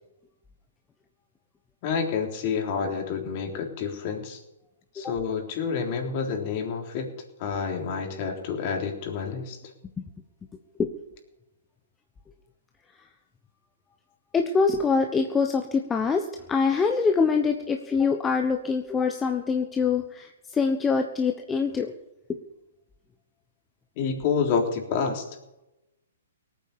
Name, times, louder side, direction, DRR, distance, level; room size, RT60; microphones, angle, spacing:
voice 1, 1.8-4.4 5.0-7.1 7.4-9.6 24.0-25.3, left 6 dB, 40° left, 3 dB, 3.6 m, -28 dB
voice 2, 14.3-21.9, left 5 dB, 15° left, 4 dB, 1.1 m, -24 dB
19.0 x 9.1 x 6.9 m, 0.92 s
hypercardioid pair, 135°, 0 cm